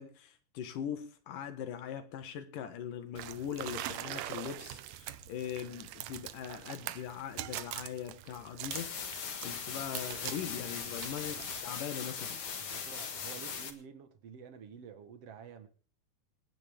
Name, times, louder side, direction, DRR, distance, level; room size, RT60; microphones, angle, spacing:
voice 1, 0.0-12.4, left 9 dB, 70° left, 3.1 m, -41 dB
sound 1, 3.2-11.6, right 13 dB, 75° right, 1.6 m, -43 dB
sound 2, 8.7-13.7, left 6 dB, 45° left, 2.1 m, -40 dB
voice 2, 12.6-15.7, right 7 dB, 55° right, 2.1 m, -50 dB
27.0 x 9.8 x 3.6 m
omnidirectional pair, 4.0 m